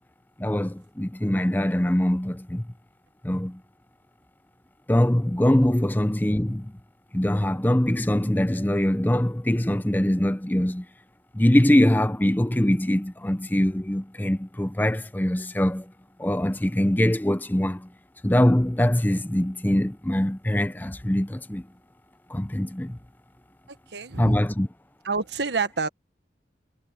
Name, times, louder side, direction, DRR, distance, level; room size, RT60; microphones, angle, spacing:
voice 1, 0.4-2.6 3.2-3.6 4.9-6.7 7.1-10.9 11.3-15.9 16.2-17.9 18.2-21.6 22.3-23.0 24.2-24.7, left 1 dB, 10° left, 0.6 m, -23 dB
voice 2, 23.7-24.4 25.0-25.9, right 4 dB, 85° right, 1.5 m, -28 dB
head